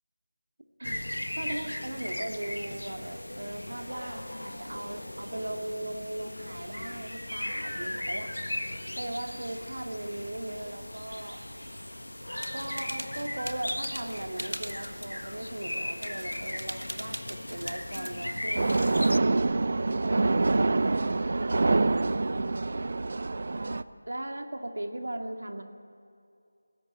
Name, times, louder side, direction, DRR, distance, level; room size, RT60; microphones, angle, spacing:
sound 1, 0.8-19.2, left 1 dB, 70° left, 1.3 m, -37 dB
voice 1, 1.4-8.3 9.0-11.4 12.5-19.6 19.8-20.3 20.7-21.8 22.1-22.7 23.5-25.6, right 1 dB, 60° right, 5 dB, 2.3 m, -38 dB
sound 2, 12.4-19.1, equal, 85° right, 1.9 m, -41 dB
sound 3, 18.5-23.8, right 3 dB, 40° right, 0.6 m, -26 dB
22.5 x 17.5 x 9.0 m, 2.4 s
figure-of-eight pair, 165°, 0 cm